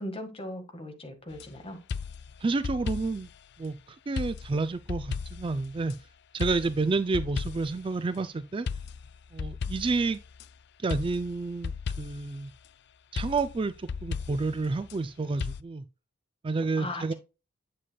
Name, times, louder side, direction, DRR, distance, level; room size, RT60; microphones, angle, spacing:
voice 1, 0.0-1.8 16.8-17.1, left 1 dB, 30° left, 1.7 m, -38 dB
sound 1, 1.3-1.5 1.9-3.4 4.2-6.0 6.4-7.9 8.7-10.5 10.9-12.4 13.2-15.0 15.4-15.6, left 5 dB, 55° left, 0.4 m, -36 dB
voice 2, 2.4-3.3 3.6-5.9 6.3-8.7 9.3-10.2 10.8-12.5 13.1-15.8 16.4-17.1, right 3 dB, 25° right, 0.3 m, -30 dB
8.3 x 7.6 x 2.3 m
head